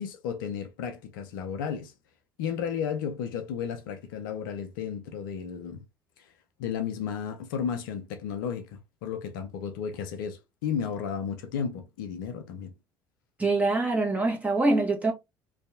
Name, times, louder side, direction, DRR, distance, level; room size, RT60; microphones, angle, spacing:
voice 1, 0.0-1.9 2.4-5.8 6.2-6.3 6.6-12.7, left 7 dB, 70° left, 0.5 m, -33 dB
voice 2, 13.4-15.1, right 2 dB, 10° right, 1.1 m, -24 dB
2.6 x 2.3 x 2.4 m
figure-of-eight pair, 60°, 12 cm